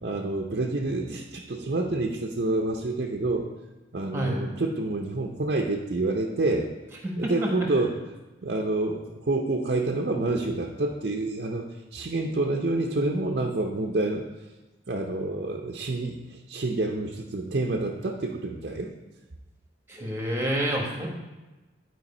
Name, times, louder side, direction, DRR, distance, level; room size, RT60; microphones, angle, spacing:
voice 1, 0.0-3.5 3.9-6.7 7.2-8.0 8.4-14.2 14.9-18.9, right 2 dB, 55° right, 2 dB, 0.6 m, -28 dB
voice 2, 19.9-21.1, right 1 dB, 15° right, 0 dB, 1.3 m, -28 dB
11.0 x 4.7 x 4.3 m, 1.1 s
head